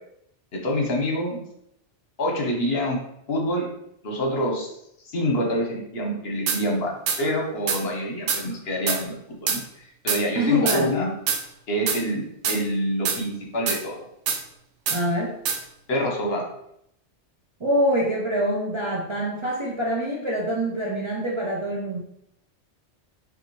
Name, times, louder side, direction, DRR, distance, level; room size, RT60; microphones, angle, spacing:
voice 1, 0.5-1.4 2.2-3.0 3.3-3.7 4.0-4.7 5.1-11.1 11.7-14.1 15.9-16.4, equal, 60° left, 0 dB, 1.1 m, -26 dB
sound 1, 6.5-6.6 7.1-7.2 7.7-7.8 8.3-8.4 8.9-9.0 9.5-9.6 10.1-10.2 10.7-10.8 11.3-11.4 11.9-12.0 12.4-12.6 13.0-13.2 13.7-13.8 14.3-14.4 14.9-15.0 15.4-15.6, right 6 dB, 85° right, 0.9 m, -24 dB
voice 2, 10.3-10.9 14.9-15.4 17.6-22.0, equal, 35° right, -3 dB, 0.5 m, -25 dB
5.4 x 2.7 x 3.0 m, 0.75 s
omnidirectional pair, 1.2 m